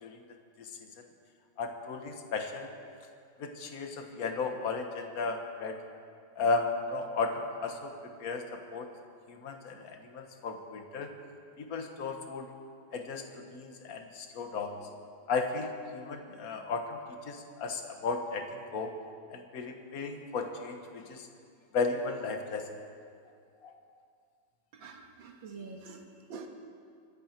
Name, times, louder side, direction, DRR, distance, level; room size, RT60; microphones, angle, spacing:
voice 1, 1.6-2.7 3.4-5.8 6.4-8.9 9.3-11.1 11.6-12.5 12.9-14.8 15.3-17.0 17.2-18.9 19.3-21.3 21.7-22.7 23.6-23.7, left 4 dB, 50° left, 5 dB, 1.7 m, -35 dB
voice 2, 24.7-26.5, right 4 dB, 90° right, 4 dB, 2.2 m, -46 dB
24.5 x 13.5 x 4.5 m, 2.3 s
omnidirectional pair, 2.1 m